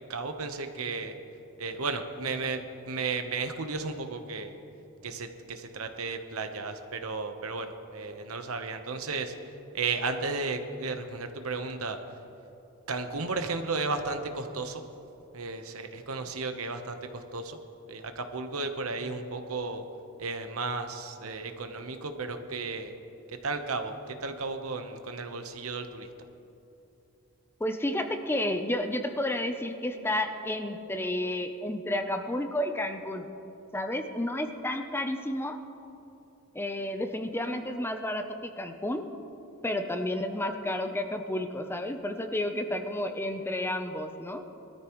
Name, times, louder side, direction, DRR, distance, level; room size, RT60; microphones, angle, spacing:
voice 1, 0.1-1.2 1.6-4.5 5.0-9.3 9.7-12.0 12.9-14.8 15.3-17.6 17.9-19.8 20.2-22.9 23.4-26.1, right 3 dB, 75° right, 7 dB, 1.0 m, -34 dB
voice 2, 27.6-33.3 33.7-35.6 36.5-39.1 39.6-44.4, left 1 dB, 10° left, 6 dB, 0.6 m, -31 dB
21.0 x 13.0 x 3.1 m, 2.9 s
head